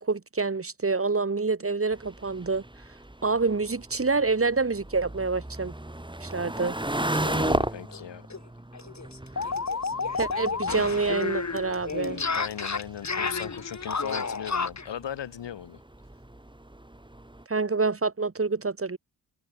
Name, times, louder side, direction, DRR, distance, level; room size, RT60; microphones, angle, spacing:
voice 1, 0.0-2.6 3.2-5.7 6.2-6.8 10.2-12.2 17.5-19.0, right 4 dB, 30° right, 2.7 m, -27 dB
sound 1, 1.9-17.4, right 1 dB, 10° right, 4.3 m, -36 dB
voice 2, 7.1-8.3 12.3-15.8, left 9 dB, 80° left, 6.2 m, -38 dB
sound 2, 7.9-8.0 8.3-8.4 8.7-14.9, left 4 dB, 40° left, 4.0 m, -31 dB
cardioid pair, 55°, 42 cm